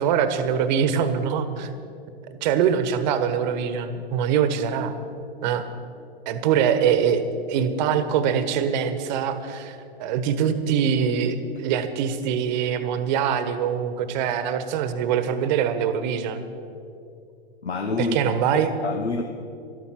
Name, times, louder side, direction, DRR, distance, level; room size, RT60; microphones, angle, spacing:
voice 1, 0.0-1.7 2.4-4.9 5.4-5.6 6.2-7.2 7.5-16.4 18.0-18.7, right 8 dB, 45° right, 10 dB, 1.2 m, -23 dB
voice 2, 17.6-19.2, left 3 dB, 85° left, 6 dB, 1.0 m, -28 dB
13.0 x 12.5 x 5.8 m, 2.6 s
hypercardioid pair, 115°, 32 cm